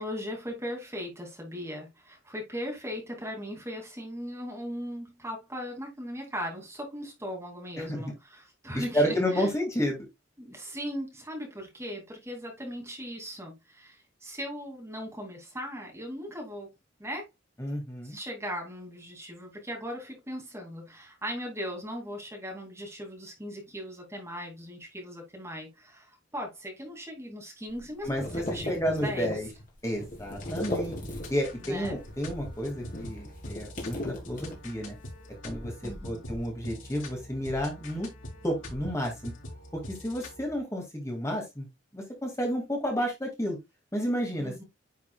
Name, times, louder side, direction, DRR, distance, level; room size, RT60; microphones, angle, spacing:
voice 1, 0.0-9.5 10.4-16.7 17.0-17.3 18.0-29.3 31.6-32.0 35.8-36.2 44.4-44.6, equal, 15° right, 2.6 m, -38 dB
voice 2, 8.7-10.1 17.6-18.2 28.0-29.5 29.8-30.9 31.3-35.0 35.4-35.7 36.0-38.1 38.4-39.3 39.9-41.7 41.9-43.6 43.9-44.6, equal, 15° left, 2.3 m, -31 dB
sound 1, 27.7-31.6 31.9-35.0, left 1 dB, 45° left, 3.1 m, -38 dB
sound 2, 30.4-40.5, left 1 dB, 85° left, 3.8 m, -44 dB
10.0 x 5.8 x 2.3 m
head